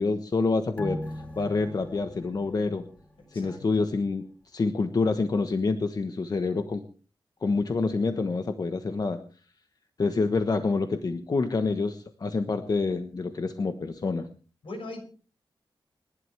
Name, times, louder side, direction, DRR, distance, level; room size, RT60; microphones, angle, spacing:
voice 1, 0.0-2.8 3.3-6.8 7.4-9.2 10.0-14.3, left 3 dB, 45° left, 8 dB, 1.2 m, -27 dB
sound 1, 0.8-3.7 4.0-4.1, equal, 15° left, 2.5 m, -40 dB
voice 2, 3.2-3.6 14.6-15.0, left 2 dB, 75° left, 3 dB, 6.1 m, -40 dB
29.0 x 11.5 x 3.4 m, 0.38 s
wide cardioid pair, 125°, 9 cm